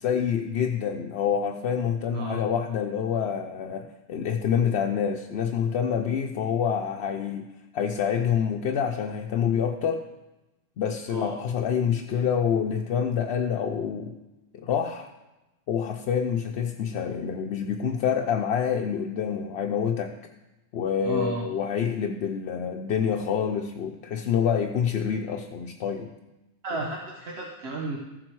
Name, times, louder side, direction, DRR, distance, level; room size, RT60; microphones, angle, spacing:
voice 1, 0.0-7.5 7.7-10.0 10.8-14.2 14.5-15.1 15.7-20.1 20.7-26.1, left 7 dB, 85° left, 3 dB, 0.9 m, -27 dB
voice 2, 21.0-21.5 26.6-28.0, right 2 dB, 80° right, -1 dB, 1.3 m, -32 dB
14.0 x 7.5 x 4.6 m, 1.0 s
omnidirectional pair, 1.0 m